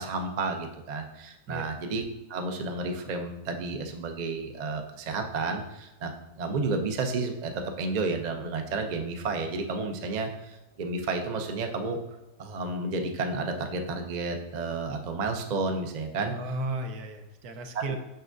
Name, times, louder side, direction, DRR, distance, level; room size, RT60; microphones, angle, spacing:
voice 1, 0.0-2.0 2.3-12.0 12.4-16.3 17.7-17.9, right 3 dB, 50° right, 4 dB, 0.5 m, -31 dB
voice 2, 16.2-18.0, right 2 dB, 80° right, 5 dB, 1.2 m, -34 dB
6.7 x 5.9 x 2.6 m, 0.98 s
omnidirectional pair, 1.6 m